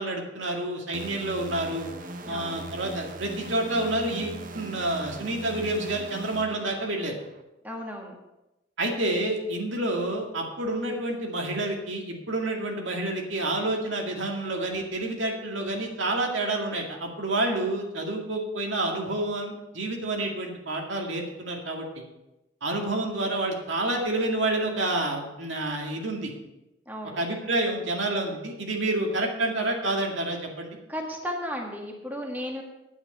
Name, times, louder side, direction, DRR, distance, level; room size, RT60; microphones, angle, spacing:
voice 1, 0.0-1.9 2.3-7.2 8.8-22.0 22.6-26.3 27.2-30.8, right 2 dB, 80° right, 1 dB, 2.1 m, -29 dB
sound 1, 0.9-7.4, right 2 dB, 45° right, 0.9 m, -40 dB
voice 2, 2.2-2.6 7.6-8.2 22.8-23.1 26.8-27.2 30.9-32.6, equal, 10° right, 0 dB, 1.7 m, -35 dB
9.9 x 9.4 x 5.6 m, 0.96 s
head